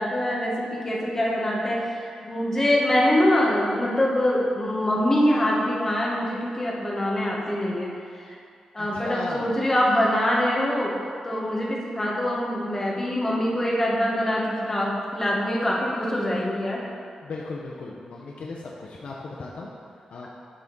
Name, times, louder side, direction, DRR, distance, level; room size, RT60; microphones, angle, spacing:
voice 1, 0.0-8.4 8.7-10.9 11.2-16.9, left 1 dB, 20° left, -4 dB, 1.2 m, -24 dB
voice 2, 8.8-9.5 17.2-19.7 20.1-20.3, left 3 dB, 70° left, -3 dB, 0.6 m, -36 dB
10.5 x 3.6 x 4.0 m, 2.3 s
wide cardioid pair, 135°, 2 cm